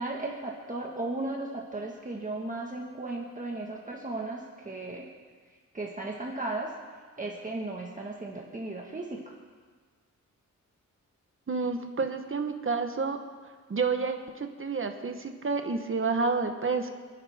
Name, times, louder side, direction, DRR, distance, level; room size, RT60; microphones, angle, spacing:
voice 1, 0.0-5.1 5.5-6.7 7.2-9.3, right 2 dB, 25° right, -2 dB, 1.6 m, -36 dB
voice 2, 11.5-13.2 13.7-16.9, right 4 dB, 40° right, 5 dB, 1.2 m, -29 dB
28.0 x 11.0 x 3.6 m, 1.5 s
wide cardioid pair, 140°, 30 cm